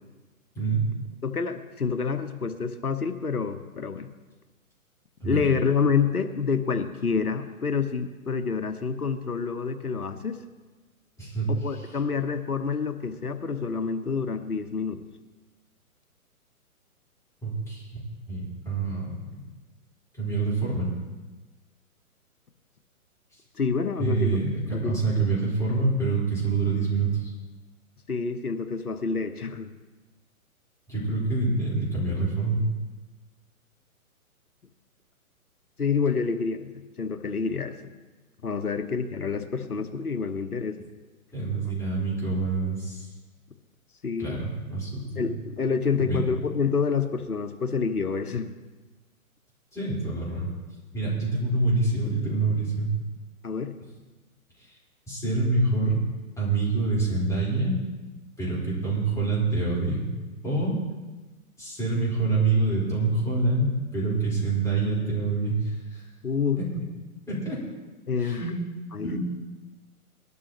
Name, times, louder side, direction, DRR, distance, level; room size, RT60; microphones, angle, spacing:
voice 1, 0.5-0.9 5.2-5.4 11.2-11.5 17.4-18.0 18.3-19.4 20.1-20.9 24.0-27.3 30.9-32.6 41.3-43.1 44.2-45.2 46.0-46.3 49.7-50.5 50.9-52.9 55.1-56.0 56.4-57.8 58.4-60.0 60.4-60.8 61.6-66.0 66.6-66.8 67.3-67.6 68.2-68.5 69.0-69.2, right 3 dB, 5° left, -7 dB, 4.4 m, -26 dB
voice 2, 1.2-4.1 5.2-10.4 11.5-15.0 23.6-24.4 24.7-25.3 28.1-29.8 35.8-37.9 38.4-40.9 44.0-44.4 45.1-48.5 53.4-53.7 66.2-66.6 68.1-68.4 68.9-69.2, left 5 dB, 85° left, 9 dB, 1.1 m, -28 dB
19.0 x 12.0 x 3.0 m, 1.2 s
figure-of-eight pair, 130°, 44 cm